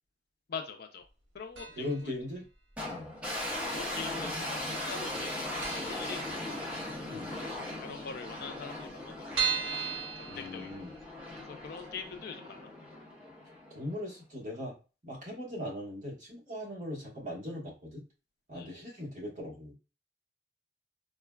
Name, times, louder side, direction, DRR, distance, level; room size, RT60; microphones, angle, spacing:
voice 1, 0.5-1.1 1.3-2.1 3.5-6.2 7.8-9.5 10.2-10.7 11.4-12.7 18.5-18.7, left 5 dB, 55° left, 6 dB, 0.4 m, -43 dB
sound 1, 1.6-2.1 2.3-2.4 3.4-4.1 4.4-4.5 4.8-4.9 5.3-5.4 5.6-6.9 7.3-7.4 7.7-7.8 8.0-8.1 8.6-11.2 11.6-11.7 12.1-12.2, right 7 dB, 90° right, 0.8 m, -36 dB
voice 2, 1.7-2.4 2.8-3.1 7.1-7.3 10.3-10.9 13.7-14.8 15.0-18.0 18.5-19.7, left 1 dB, 40° right, -3 dB, 1.2 m, -39 dB
sound 2, 2.8-14.0, left 1 dB, 5° right, 0.7 m, -39 dB
3.7 x 2.2 x 2.2 m, 0.32 s
head